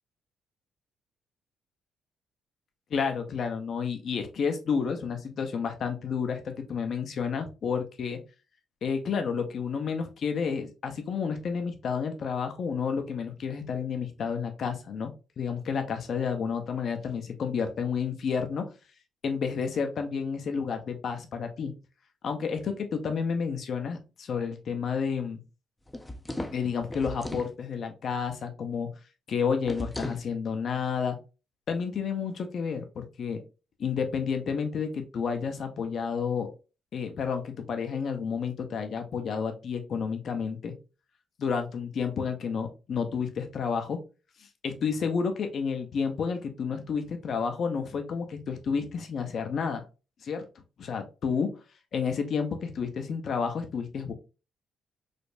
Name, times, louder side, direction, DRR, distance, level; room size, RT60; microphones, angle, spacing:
voice 1, 2.9-8.2 8.8-15.1 15.4-18.7 19.2-21.7 22.2-25.4 26.5-28.9 29.3-31.2 31.7-33.4 33.8-36.5 36.9-40.7 41.4-44.0 44.6-49.8 50.2-50.4 50.8-51.6 51.9-54.1, left 6 dB, 60° left, 6 dB, 0.7 m, -30 dB
sound 1, 25.9-27.5 29.6-30.3, left 1 dB, 15° left, 0.5 m, -36 dB
5.0 x 2.1 x 2.5 m, 0.31 s
supercardioid pair, 55°, 0 cm